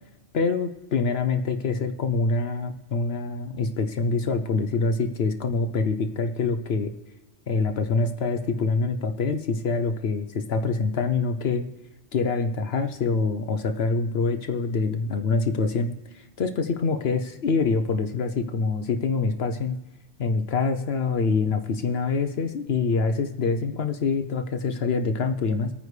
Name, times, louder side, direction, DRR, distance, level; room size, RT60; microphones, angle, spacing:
voice 1, 0.3-6.9 7.5-11.6 12.1-19.8 20.2-25.7, left 4 dB, 65° left, 8 dB, 1.0 m, -25 dB
25.0 x 9.4 x 3.2 m, 1.1 s
omnidirectional pair, 1.2 m